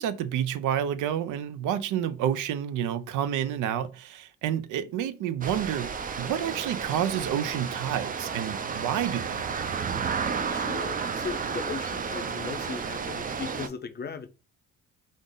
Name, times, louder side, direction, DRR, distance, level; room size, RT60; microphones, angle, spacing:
voice 1, 0.0-9.5, right 10 dB, 80° right, 0.5 m, -29 dB
sound 1, 5.4-13.7, right 6 dB, 30° right, 0.4 m, -32 dB
voice 2, 10.5-14.3, left 5 dB, 35° left, 0.5 m, -37 dB
3.5 x 2.5 x 3.7 m
cardioid pair, 90°, 30 cm